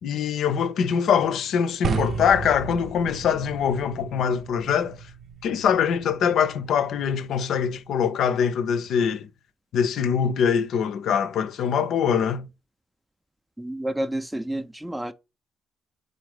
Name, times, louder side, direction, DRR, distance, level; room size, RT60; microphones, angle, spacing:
voice 1, 0.0-5.0 5.4-9.3 9.7-12.5, left 7 dB, 65° left, 0.4 m, -23 dB
sound 1, 1.8-8.0, right 4 dB, 55° right, 0.6 m, -35 dB
voice 2, 13.6-15.1, right 1 dB, 10° right, 0.4 m, -30 dB
4.2 x 3.8 x 3.2 m
hypercardioid pair, 50°, 0 cm